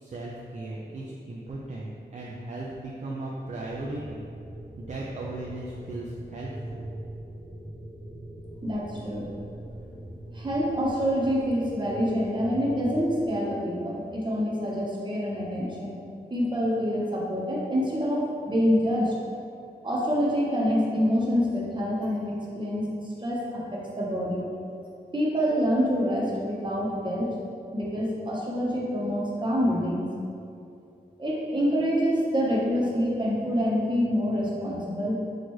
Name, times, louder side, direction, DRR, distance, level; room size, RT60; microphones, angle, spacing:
voice 1, 0.0-4.2 4.8-6.8, right 2 dB, 45° right, -4 dB, 0.4 m, -37 dB
sound 1, 3.7-13.4, right 1 dB, 65° right, 1.0 m, -42 dB
voice 2, 8.6-9.3 10.0-16.0 16.3-19.1 19.8-22.9 23.2-24.4 25.1-27.3 27.7-30.1 31.2-35.1, equal, 25° right, -5 dB, 1.0 m, -26 dB
6.2 x 2.5 x 3.1 m, 2.5 s
wide cardioid pair, 85°, 17 cm